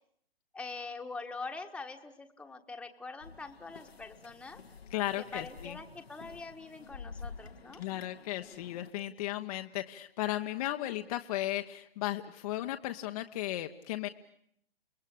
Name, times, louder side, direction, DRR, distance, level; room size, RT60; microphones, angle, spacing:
voice 1, 0.5-4.6 5.2-7.8, left 3 dB, 5° left, 5 dB, 1.5 m, -44 dB
sound 1, 3.2-8.9, left 5 dB, 85° left, 1.9 m, -50 dB
voice 2, 4.9-5.8 7.8-14.1, left 15 dB, 40° left, 6 dB, 1.1 m, -35 dB
30.0 x 20.5 x 8.6 m, 0.70 s
hypercardioid pair, 135°, 30 cm